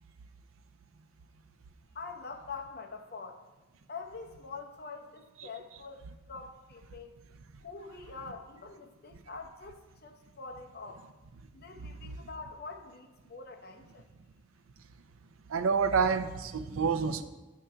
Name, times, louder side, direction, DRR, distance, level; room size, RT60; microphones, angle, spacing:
voice 1, 1.9-3.4 3.9-7.2 7.6-11.0 11.5-14.1, left 4 dB, 50° left, 2 dB, 0.7 m, -45 dB
voice 2, 15.5-17.2, right 5 dB, 90° right, 10 dB, 0.5 m, -28 dB
8.8 x 3.7 x 5.6 m, 1.1 s
head